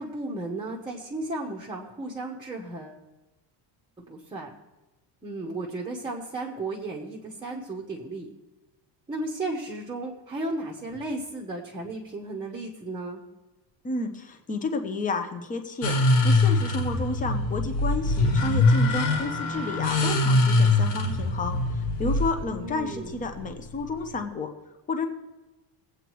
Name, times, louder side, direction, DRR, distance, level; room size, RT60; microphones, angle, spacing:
voice 1, 0.0-3.0 4.0-4.5 5.2-8.3 9.1-13.2 22.5-23.2, right 2 dB, 10° right, -3 dB, 0.9 m, -34 dB
voice 2, 13.8-16.0 16.2-24.5 24.9-25.1, left 3 dB, 15° left, 5 dB, 0.7 m, -31 dB
sound 1, 15.8-24.2, left 2 dB, 85° left, 2.1 m, -23 dB
19.5 x 8.2 x 3.1 m, 1.1 s
cardioid pair, 175°, 47 cm